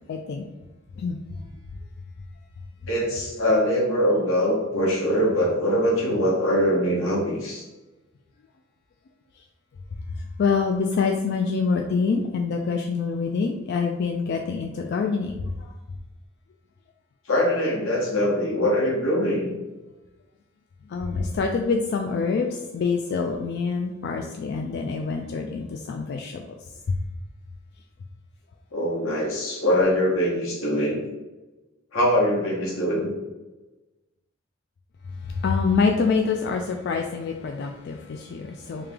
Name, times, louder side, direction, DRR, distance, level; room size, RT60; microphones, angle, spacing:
voice 1, 0.1-0.4 1.0-1.2 10.2-15.7 20.9-27.0 35.1-38.9, left 5 dB, 55° left, 3 dB, 0.3 m, -26 dB
voice 2, 2.9-7.6 17.3-19.5 28.7-31.0 31.9-33.1, equal, 80° left, -3 dB, 1.2 m, -23 dB
3.2 x 2.9 x 3.5 m, 1.1 s
head